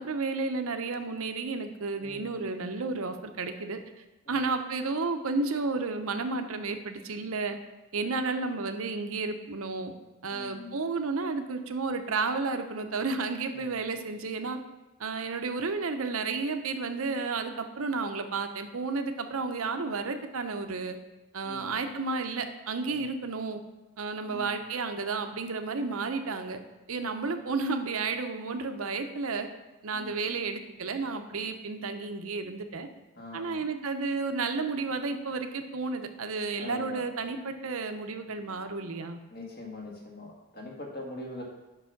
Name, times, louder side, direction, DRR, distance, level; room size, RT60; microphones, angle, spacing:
voice 1, 0.0-3.8 4.3-7.6 7.9-9.9 10.2-14.6 15.0-21.0 21.3-23.6 24.0-26.6 26.9-29.5 29.8-32.9 33.3-39.2, right 4 dB, 70° right, 7 dB, 0.7 m, -32 dB
voice 2, 2.0-2.4 4.3-4.4 10.3-10.7 13.5-14.0 21.4-21.7 22.8-23.1 24.3-24.6 27.0-27.3 29.9-30.2 33.1-33.6 36.6-37.0 39.3-41.4, left 2 dB, 45° left, -1 dB, 1.7 m, -43 dB
6.9 x 5.5 x 5.8 m, 1.1 s
head